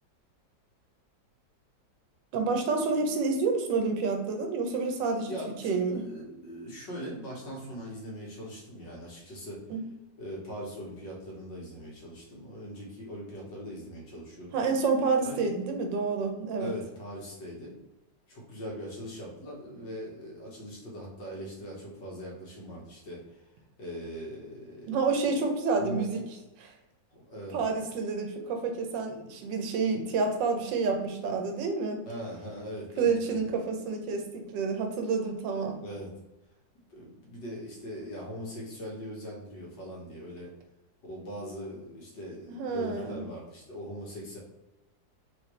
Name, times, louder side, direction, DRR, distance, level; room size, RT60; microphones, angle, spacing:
voice 1, 2.3-5.3 5.6-6.0 9.7-9.8 14.5-16.7 24.9-26.2 26.6-26.7 27.5-32.0 33.0-35.8 42.5-43.2, right 4 dB, 85° right, 4 dB, 1.4 m, -29 dB
voice 2, 5.1-9.6 10.2-14.6 15.3-15.5 16.6-17.8 18.3-23.5 23.8-25.0 25.8-26.0 27.1-27.6 32.1-33.4 35.8-36.1 36.9-40.5 41.0-44.4, equal, 75° left, -4 dB, 2.1 m, -41 dB
4.9 x 3.0 x 3.2 m, 0.99 s
omnidirectional pair, 2.0 m